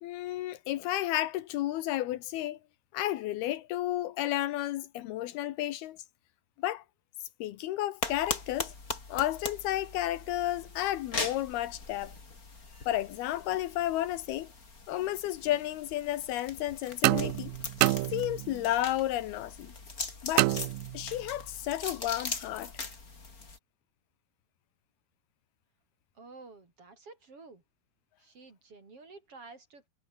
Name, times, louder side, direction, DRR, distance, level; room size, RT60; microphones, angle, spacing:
voice 1, 0.0-2.6 2.9-6.0 6.6-6.8 7.4-8.7 9.1-12.1 12.9-14.5 14.9-17.5 18.1-19.7 20.2-20.5 20.9-22.7, left 14 dB, 80° left, 2.9 m, -32 dB
sound 1, 8.0-23.6, left 3 dB, 25° left, 3.2 m, -41 dB
sound 2, 17.0-18.7 20.4-21.3, right 19 dB, 80° right, 2.1 m, -28 dB
voice 2, 26.1-27.6 28.2-29.9, right 3 dB, 35° right, 4.7 m, -51 dB
omnidirectional pair, 4.5 m